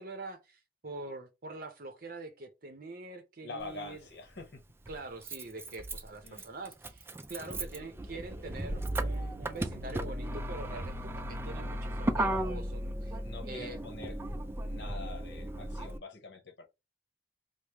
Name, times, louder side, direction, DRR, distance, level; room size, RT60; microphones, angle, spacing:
voice 1, 0.0-4.0 4.9-13.1 13.5-13.8, right 2 dB, 50° right, 0.6 m, -44 dB
voice 2, 3.4-4.6 6.2-6.5 13.2-14.2 14.6-16.6, left 3 dB, 70° left, 0.9 m, -45 dB
Motor vehicle (road), 3.6-3.7 4.9-16.0, right 1 dB, 15° right, 0.3 m, -36 dB
4.9 x 2.0 x 2.9 m
head